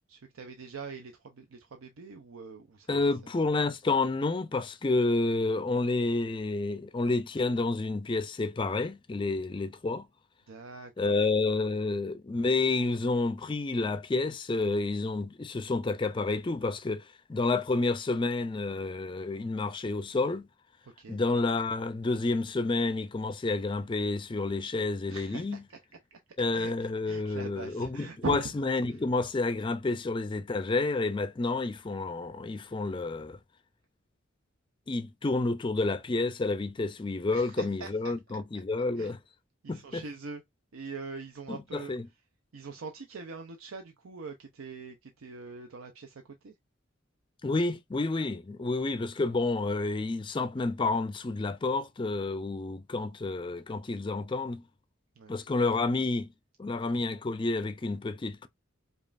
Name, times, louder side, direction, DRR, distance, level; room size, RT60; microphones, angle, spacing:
voice 1, 0.1-3.3 10.5-11.1 20.8-21.2 25.1-25.8 26.1-26.2 26.5-28.5 28.9-29.0 37.3-38.1 38.5-38.6 39.0-39.1 39.6-40.4 40.7-41.9 42.5-46.5 55.2-55.4, right 4 dB, 90° right, 0.6 m, -42 dB
voice 2, 2.9-10.1 11.0-20.5 21.1-25.6 26.4-33.4 34.9-39.2 39.7-40.0 41.5-42.1 47.4-54.6 55.3-56.3 56.6-58.5, left 3 dB, 25° left, 0.4 m, -29 dB
5.1 x 2.4 x 2.4 m
head